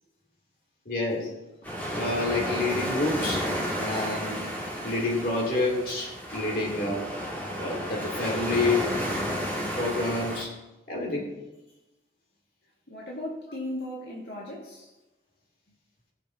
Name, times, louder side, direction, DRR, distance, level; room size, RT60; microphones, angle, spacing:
voice 1, 0.8-1.3 1.9-3.4 3.8-4.4 4.8-7.0 7.6-8.9 9.7-10.5 10.9-11.3, left 2 dB, 55° left, 2.9 m, -28 dB
sound 1, 1.6-10.4, equal, 10° left, 2.1 m, -32 dB
voice 2, 12.9-14.9, left 1 dB, 85° left, 1.9 m, -37 dB
19.0 x 6.7 x 2.8 m
head